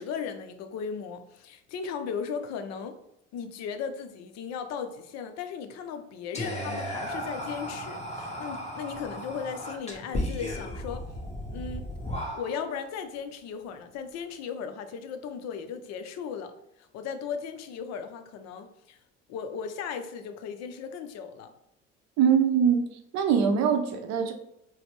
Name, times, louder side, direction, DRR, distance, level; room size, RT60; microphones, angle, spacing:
voice 1, 0.0-3.0 3.3-11.0 11.5-11.9 12.4-16.5 16.8-19.0 19.3-21.5, left 6 dB, 45° left, 0.5 m, -36 dB
Whispering, 6.3-12.8, equal, 20° left, 0.9 m, -35 dB
voice 2, 22.2-22.8 23.1-24.3, right 7 dB, 45° right, 0.6 m, -22 dB
4.0 x 2.0 x 3.0 m
figure-of-eight pair, 60°, 37 cm